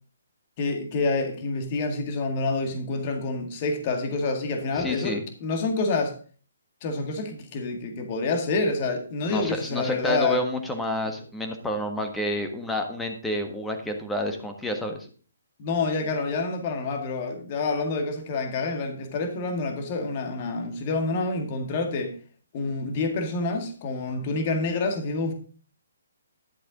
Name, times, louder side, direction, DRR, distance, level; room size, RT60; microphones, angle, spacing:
voice 1, 0.6-6.2 6.8-10.4 15.6-22.1 22.5-25.3, left 3 dB, 35° left, 4 dB, 2.0 m, -27 dB
voice 2, 4.7-5.2 9.3-15.1, left 1 dB, 5° left, 4 dB, 1.4 m, -29 dB
11.5 x 7.6 x 3.9 m, 0.41 s
figure-of-eight pair, 140°, 0 cm